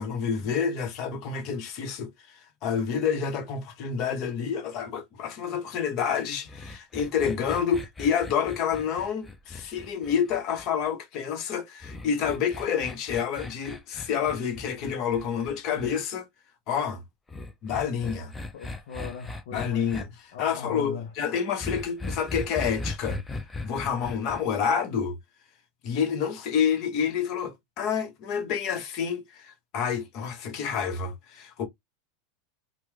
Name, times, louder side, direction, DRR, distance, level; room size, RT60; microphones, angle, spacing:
voice 1, 0.0-16.3 16.7-17.0 17.6-18.3 19.5-23.2 23.6-25.1 25.8-31.7, left 7 dB, 50° left, 1.0 m, -28 dB
sound 1, 6.5-10.9 11.8-15.9 17.3-20.0 21.6-24.4, left 2 dB, 15° left, 0.7 m, -38 dB
voice 2, 18.5-19.9 20.3-21.1, left 6 dB, 70° left, 0.6 m, -38 dB
3.0 x 2.2 x 3.4 m
hypercardioid pair, 95°, 0 cm